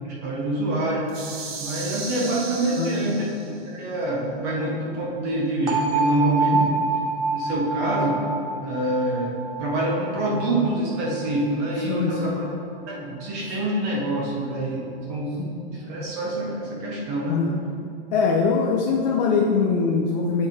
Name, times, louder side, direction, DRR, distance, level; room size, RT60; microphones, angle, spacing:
voice 1, 0.0-3.3 3.7-6.8 7.3-8.2 8.6-12.5 12.9-17.4, right 1 dB, 15° right, -3 dB, 0.4 m, -26 dB
sound 1, 1.1-3.6, right 4 dB, 85° right, 1.0 m, -36 dB
voice 2, 2.8-3.2 6.5-6.8 11.8-12.4 13.4-13.5 15.4-15.5 17.3-17.6 18.1-20.5, left 5 dB, 45° left, 0 dB, 0.5 m, -23 dB
sound 2, 5.7-11.5, right 4 dB, 65° right, 1.3 m, -27 dB
8.1 x 3.3 x 4.2 m, 2.8 s
supercardioid pair, 170°, 30 cm